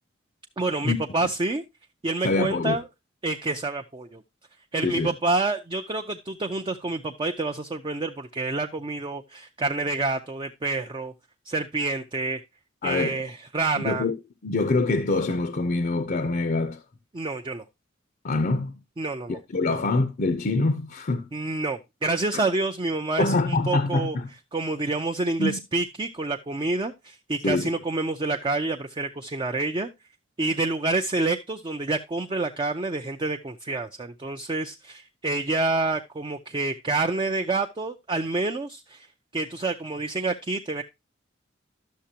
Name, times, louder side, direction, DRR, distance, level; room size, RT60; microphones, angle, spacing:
voice 1, 0.6-1.6 2.0-2.8 3.2-4.2 4.7-11.1 11.5-12.4 12.8-14.0 17.1-17.6 19.0-19.4 19.6-19.7 21.3-24.2 24.5-29.9 30.4-39.1 39.3-40.8, right 3 dB, 25° right, 0.5 m, -28 dB
voice 2, 2.2-2.8 4.8-5.1 12.8-13.2 13.8-14.2 14.4-16.8 18.2-18.8 19.3-21.3 22.3-22.4 23.2-24.3 25.4-25.6 27.4-27.7, left 3 dB, 45° left, 0.6 m, -25 dB
11.5 x 6.7 x 2.8 m
head